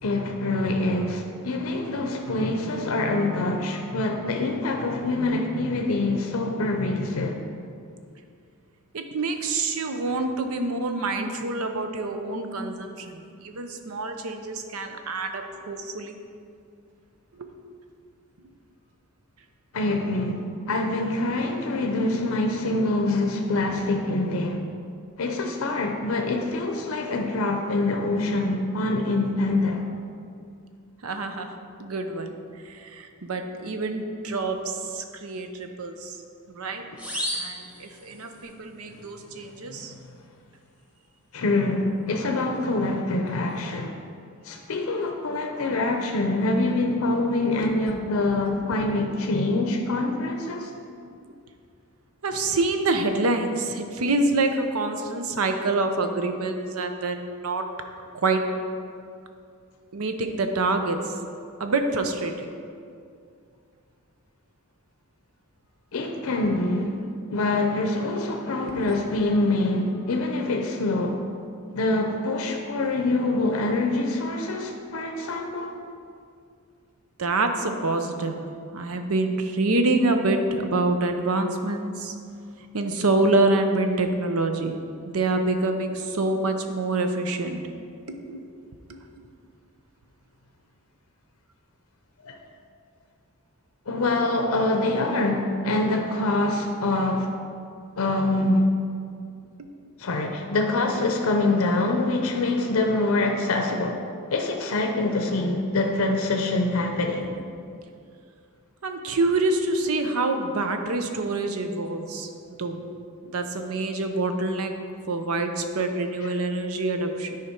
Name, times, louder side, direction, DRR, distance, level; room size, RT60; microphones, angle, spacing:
voice 1, 0.0-7.4 19.7-24.7 25.2-29.9 36.9-37.0 39.7-39.8 41.3-44.0 44.4-50.7 65.9-67.0 67.3-71.2 71.7-75.7 92.2-92.4 93.9-97.3 98.0-98.7 100.0-104.0 104.3-107.3 116.2-116.3, left 2 dB, 75° left, 3 dB, 0.6 m, -25 dB
voice 2, 8.9-16.1 17.3-17.5 22.0-22.1 31.0-31.5 31.8-32.4 32.6-36.1 36.5-36.8 37.3-39.9 47.6-47.7 52.2-57.6 58.2-58.4 59.9-61.0 61.6-62.5 68.6-68.9 77.2-78.4 78.7-82.1 82.7-84.8 85.0-87.6 88.1-88.4 88.9-89.0 99.6-99.7 108.8-112.8 113.2-114.7 115.1-117.4, right 2 dB, 85° right, 6 dB, 0.7 m, -26 dB
sound 1, 37.0-38.5, equal, 5° right, 1.0 m, -33 dB
9.8 x 5.1 x 4.4 m, 2.4 s
head